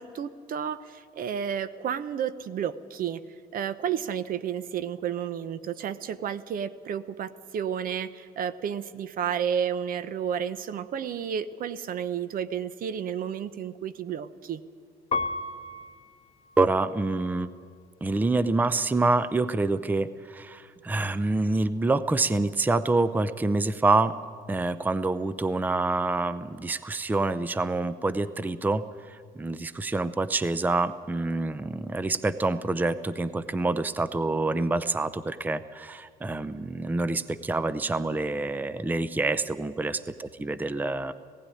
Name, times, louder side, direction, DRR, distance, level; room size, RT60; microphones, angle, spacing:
voice 1, 0.0-3.2 3.5-14.6, right 8 dB, 55° right, 14 dB, 0.9 m, -31 dB
Piano, 15.1-17.9 18.5-19.2, left 3 dB, 40° left, 1.0 m, -36 dB
voice 2, 16.6-17.5 18.0-24.1 24.5-41.1, right 3 dB, 10° right, 14 dB, 0.6 m, -27 dB
17.0 x 16.0 x 10.0 m, 2.1 s
cardioid pair, 110°, 17 cm